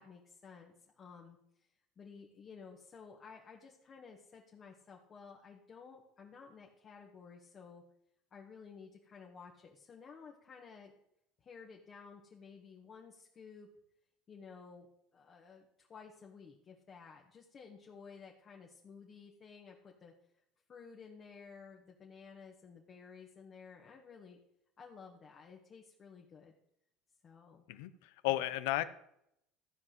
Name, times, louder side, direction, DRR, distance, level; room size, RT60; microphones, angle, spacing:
voice 1, 0.0-1.7 2.0-7.8 8.3-10.9 11.4-13.7 14.3-14.9 15.1-20.1 20.7-24.4 24.8-26.5 27.2-27.6, left 5 dB, 40° left, -1 dB, 1.9 m, -54 dB
voice 2, 27.7-28.8, left 16 dB, 80° left, 14 dB, 0.8 m, -34 dB
14.0 x 4.8 x 7.8 m, 0.76 s
supercardioid pair, 95°, 0 cm